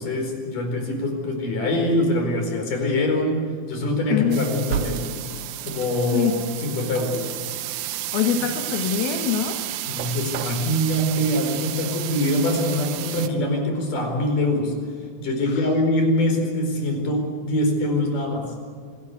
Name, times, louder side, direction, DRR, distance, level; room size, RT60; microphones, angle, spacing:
voice 1, 0.0-5.1 5.6-6.4 6.6-7.3 9.9-14.7 15.2-18.5, left 1 dB, 60° left, 3 dB, 6.1 m, -24 dB
sound 1, 4.3-13.3, right 12 dB, 75° right, 1.7 m, -31 dB
voice 2, 6.1-6.5 8.1-9.6 15.5-15.7, left 8 dB, 80° left, 4 dB, 3.4 m, -24 dB
26.0 x 18.5 x 8.2 m, 2.1 s
omnidirectional pair, 4.3 m